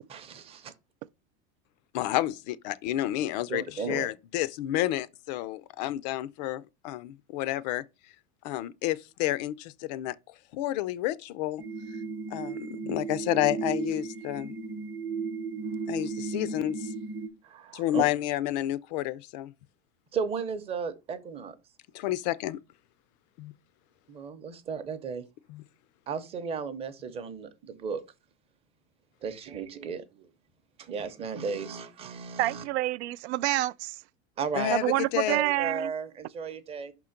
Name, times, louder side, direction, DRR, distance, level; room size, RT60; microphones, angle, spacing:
voice 1, 0.1-0.7 3.5-4.1 17.4-18.0 20.1-21.5 24.1-25.2 26.1-28.0 29.2-30.3 30.8-32.6 34.4-34.8 35.3-36.9, right 6 dB, 20° right, 0.7 m, -35 dB
voice 2, 1.9-7.8 8.4-10.2 10.5-11.6 12.3-14.5 15.9-16.9 17.7-19.5 21.9-22.6 23.4-23.5 25.5-25.6 34.5-35.4, left 14 dB, 40° left, 0.4 m, -30 dB
sound 1, 11.6-17.3, right 4 dB, 35° right, 1.0 m, -35 dB
voice 3, 32.4-34.0 34.7-35.9, right 17 dB, 85° right, 0.5 m, -27 dB
5.9 x 3.7 x 5.7 m
supercardioid pair, 170°, 32 cm